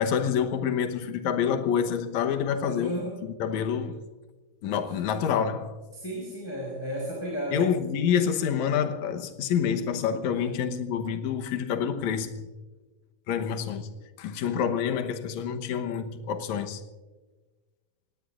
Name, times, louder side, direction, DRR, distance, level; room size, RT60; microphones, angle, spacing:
voice 1, 0.0-3.0 3.2-4.0 4.6-5.8 7.5-12.5 13.3-13.9 14.2-16.8, left 7 dB, 65° left, 2.0 m, -27 dB
voice 2, 2.6-3.2 5.9-7.7 10.3-10.4 14.4-14.9, equal, 5° left, 4.8 m, -34 dB
26.0 x 19.5 x 2.5 m
omnidirectional pair, 4.5 m